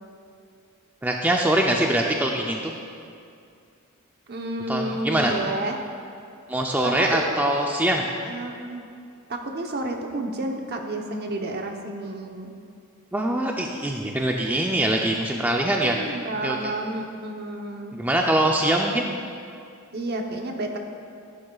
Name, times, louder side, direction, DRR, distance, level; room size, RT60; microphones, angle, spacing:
voice 1, 1.0-2.7 4.7-5.3 6.5-8.0 13.1-16.0 16.4-16.6 17.9-19.1, right 1 dB, 10° right, 0 dB, 0.5 m, -23 dB
voice 2, 4.3-5.8 6.8-7.3 7.6-7.8 8.2-8.8 9.3-12.5 15.8-17.9 19.9-20.8, right 2 dB, 45° right, 2 dB, 0.9 m, -31 dB
13.5 x 11.5 x 2.4 m, 2.4 s
head